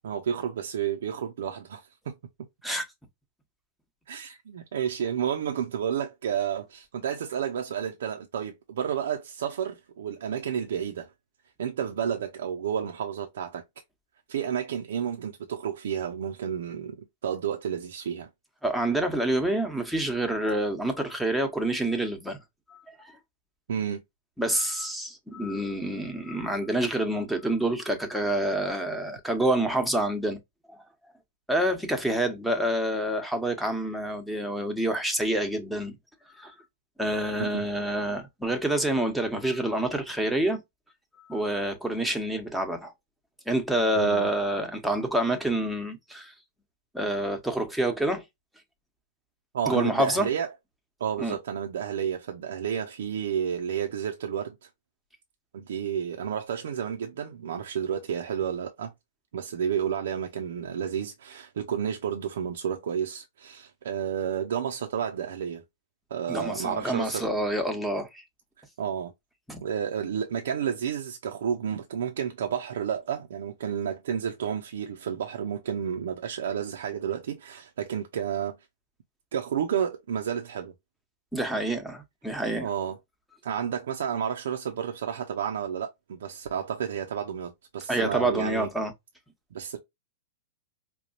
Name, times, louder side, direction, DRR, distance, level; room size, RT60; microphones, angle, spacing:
voice 1, 0.0-2.1 4.1-11.1 11.6-13.6 14.3-17.0 17.2-18.3 23.7-24.0 37.4-37.6 44.0-44.3 49.5-50.5 51.0-54.7 55.5-58.9 59.3-65.6 66.1-67.3 68.8-69.1 69.6-78.6 79.3-80.7 82.6-83.0 83.4-88.7 89.5-89.8, right 8 dB, 65° right, 0.6 m, -31 dB
voice 2, 18.6-22.4 22.7-23.2 24.4-30.4 30.7-30.8 31.5-36.0 36.3-36.5 37.0-40.6 41.2-42.9 43.5-46.3 46.9-48.2 49.7-50.3 51.2-51.3 66.3-68.2 69.5-69.6 81.3-82.7 87.9-88.9, right 1 dB, ahead, 1.0 m, -27 dB
5.1 x 2.2 x 2.6 m
figure-of-eight pair, 100°, 0 cm